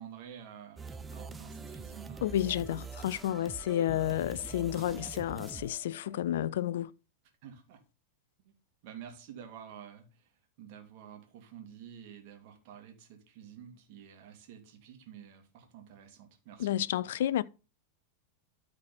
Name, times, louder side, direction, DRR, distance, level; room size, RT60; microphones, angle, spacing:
voice 1, 0.0-2.2 7.4-7.8 8.5-8.6 8.8-10.3 10.6-17.0, right 9 dB, 45° right, 2.4 m, -50 dB
sound 1, 0.8-6.5, right 5 dB, 15° right, 0.6 m, -45 dB
voice 2, 2.2-6.9 16.6-17.4, left 12 dB, 55° left, 0.4 m, -31 dB
13.0 x 4.6 x 4.2 m
figure-of-eight pair, 90°, 0 cm